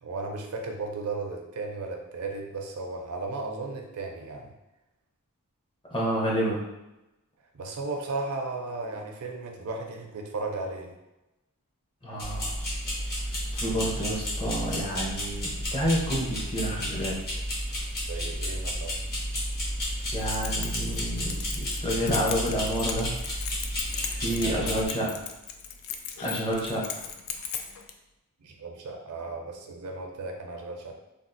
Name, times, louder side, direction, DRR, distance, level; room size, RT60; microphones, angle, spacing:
voice 1, 0.0-4.5 7.5-10.9 18.0-19.0 24.2-25.2 28.4-31.0, right 3 dB, 70° right, 2 dB, 0.5 m, -35 dB
voice 2, 5.9-6.6 12.0-12.5 13.5-17.1 20.1-23.1 24.1-25.1 26.2-27.0, equal, 25° left, -4 dB, 0.7 m, -29 dB
sound 1, 12.2-24.9, equal, 45° left, 0.9 m, -32 dB
Keys jangling, 20.0-27.9, left 7 dB, 65° left, 0.3 m, -38 dB
3.4 x 2.3 x 2.5 m, 0.96 s
head